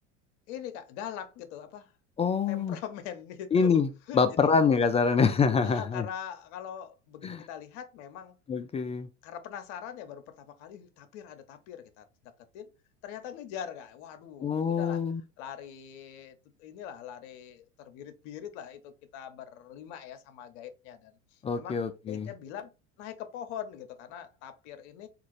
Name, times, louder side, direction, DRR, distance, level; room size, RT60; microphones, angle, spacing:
voice 1, 0.5-1.9 2.5-3.8 4.1-4.5 5.6-8.4 9.2-12.1 12.5-12.7 13.0-15.0 15.4-22.7 23.0-25.1, left 9 dB, 65° left, 0.8 m, -42 dB
voice 2, 2.2-2.8 3.5-3.9 4.1-6.1 7.2-7.4 8.5-9.1 14.4-15.2 21.4-22.3, left 5 dB, 20° left, 0.3 m, -25 dB
3.7 x 2.5 x 3.0 m
hypercardioid pair, 85°, 36 cm